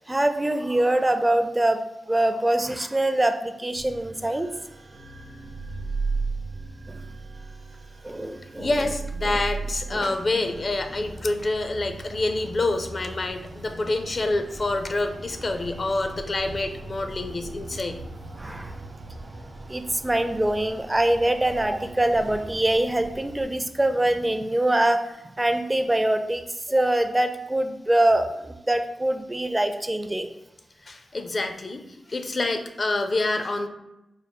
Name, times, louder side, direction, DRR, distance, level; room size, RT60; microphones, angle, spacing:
voice 1, 0.1-4.5 6.9-7.0 8.0-8.7 9.2-9.4 9.9-10.1 17.7-17.8 18.4-18.8 19.7-30.3, right 1 dB, 20° right, 8 dB, 0.4 m, -24 dB
sound 1, 3.7-11.2, right 4 dB, 90° right, 0.8 m, -34 dB
voice 2, 8.6-18.0 30.8-33.7, left 2 dB, 50° left, 6 dB, 0.5 m, -27 dB
sound 2, 10.2-23.5, right 1 dB, 60° right, 0.8 m, -41 dB
4.5 x 2.1 x 3.5 m, 0.91 s
cardioid pair, 45°, 0 cm